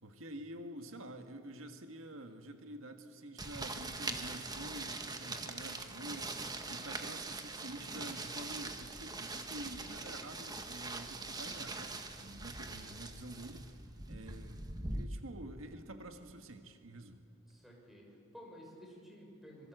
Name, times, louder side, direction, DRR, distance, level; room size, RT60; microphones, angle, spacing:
voice 1, 0.0-6.4 6.7-17.3, right 1 dB, 85° right, 6 dB, 1.7 m, -48 dB
sound 1, 3.4-15.0, right 3 dB, 20° right, 1.6 m, -42 dB
voice 2, 14.2-14.6 17.5-19.7, equal, ahead, -1 dB, 6.1 m, -54 dB
26.5 x 23.5 x 7.9 m, 2.4 s
head